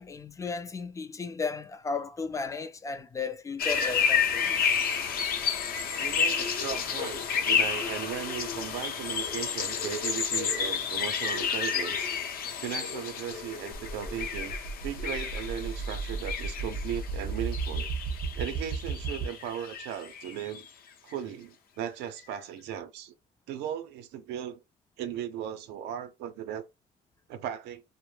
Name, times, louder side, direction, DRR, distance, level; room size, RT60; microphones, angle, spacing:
voice 1, 0.0-4.7, left 4 dB, 20° left, 0.3 m, -35 dB
sound 1, 3.6-20.6, left 7 dB, 60° left, 0.6 m, -31 dB
voice 2, 6.0-12.1 12.6-14.5 14.8-17.9 18.4-20.7 21.0-23.1 23.5-24.6 25.0-26.6 27.3-27.8, right 10 dB, 85° right, 0.5 m, -37 dB
sound 2, 13.7-19.3, right 4 dB, 35° right, 0.5 m, -35 dB
2.1 x 2.0 x 3.1 m
cardioid pair, 110°, 17 cm